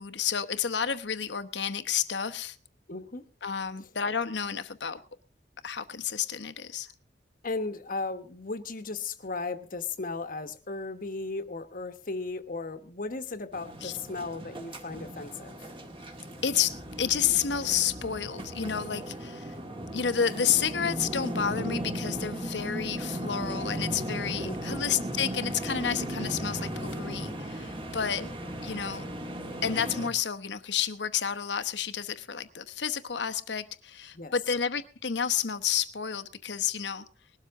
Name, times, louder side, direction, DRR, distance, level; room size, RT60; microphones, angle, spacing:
voice 1, 0.0-2.6 3.4-5.0 5.6-6.9 13.8-13.9 16.4-19.5 19.9-28.2 28.6-29.1 29.6-37.0, left 8 dB, 80° left, 1.0 m, -30 dB
voice 2, 2.9-3.2 7.4-15.6 24.4-24.8 28.0-28.3 34.1-34.3, left 3 dB, 50° left, 1.2 m, -36 dB
sound 1, 13.5-30.1, right 1 dB, 30° right, 2.0 m, -36 dB
20.0 x 12.5 x 3.7 m
head